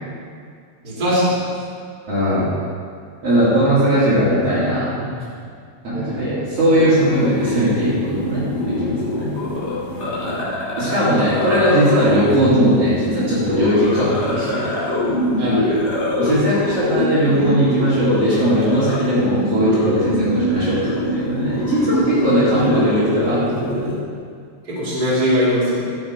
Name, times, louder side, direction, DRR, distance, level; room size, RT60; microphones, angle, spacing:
voice 1, 0.8-1.4 5.9-6.3 9.1-9.2 15.4-15.9 22.3-22.8 24.7-25.8, equal, 30° right, -7 dB, 3.2 m, -21 dB
voice 2, 2.1-2.5 3.2-4.9 5.8-8.4 8.7-9.3 10.8-14.6 16.2-20.8 21.1-23.9, equal, 50° right, -11 dB, 3.0 m, -19 dB
sound 1, 6.8-24.0, left 1 dB, 25° left, 2.2 m, -23 dB
12.5 x 7.1 x 4.8 m, 2.2 s
omnidirectional pair, 3.8 m